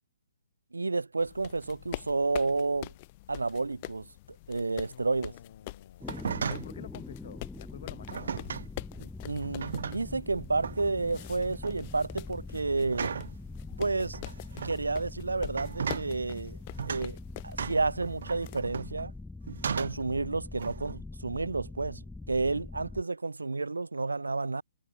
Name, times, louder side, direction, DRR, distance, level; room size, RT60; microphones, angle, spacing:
voice 1, 0.7-2.9 3.3-4.1 4.5-5.3 9.0-13.1 13.8-14.2 14.6-16.6 16.8-17.2 17.4-19.1 19.7-24.6, right 3 dB, 80° right, 2.2 m, -31 dB
sound 1, 1.2-18.6, left 20 dB, 35° left, 2.6 m, -46 dB
voice 2, 4.8-6.2 6.5-8.4, left 8 dB, 55° left, 6.0 m, -49 dB
sound 2, 6.0-23.0, left 2 dB, 5° left, 1.7 m, -44 dB
sound 3, 6.0-6.8 8.1-8.7 9.4-10.2 10.6-10.9 11.4-11.8 12.9-13.4 14.1-14.8 15.5-16.1 16.8-17.1 17.6-19.1 19.5-20.1 20.6-21.0, right 6 dB, 65° right, 3.3 m, -36 dB
figure-of-eight pair, 130°, 0 cm